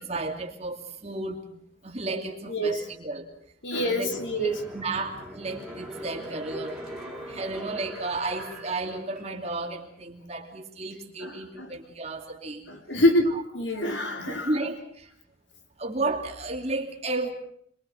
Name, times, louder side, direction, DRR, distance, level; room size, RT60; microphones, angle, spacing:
voice 1, 0.0-1.5 1.8-3.3 3.7-4.1 4.4-6.8 7.2-12.6 13.3-13.4 14.3-15.1 15.8-17.3, right 2 dB, 35° right, 3 dB, 2.8 m, -33 dB
voice 2, 2.5-2.8 3.6-4.5 7.1-7.3 11.2-11.7 12.7-14.5, left 1 dB, 75° left, 4 dB, 3.6 m, -26 dB
sound 1, 4.1-9.6 10.0-10.1, equal, ahead, 5.7 m, -41 dB
26.5 x 23.0 x 5.9 m, 0.65 s
head